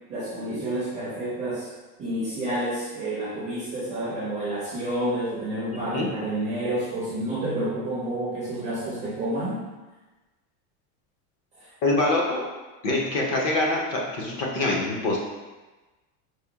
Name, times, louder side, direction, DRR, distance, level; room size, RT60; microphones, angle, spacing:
voice 1, 0.1-1.7 2.0-9.6, right 1 dB, 15° right, -8 dB, 0.4 m, -29 dB
voice 2, 11.8-12.5 12.8-15.2, left 2 dB, 35° left, -2 dB, 0.5 m, -24 dB
4.7 x 2.1 x 2.7 m, 1.2 s
supercardioid pair, 160°, 45 cm